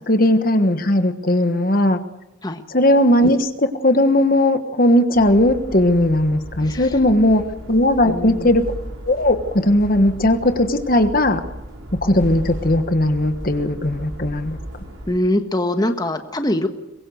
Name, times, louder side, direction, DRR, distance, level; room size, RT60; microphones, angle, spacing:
voice 1, 0.1-2.0 2.7-7.4 7.7-8.6 9.0-11.4 12.0-14.6, left 1 dB, 45° left, 8 dB, 1.3 m, -17 dB
sound 1, 5.1-15.1, equal, 80° right, 6.5 m, -35 dB
voice 2, 6.6-7.0 8.0-8.5 15.1-16.7, left 1 dB, 20° left, 7 dB, 1.4 m, -23 dB
23.5 x 21.5 x 6.5 m, 0.93 s
head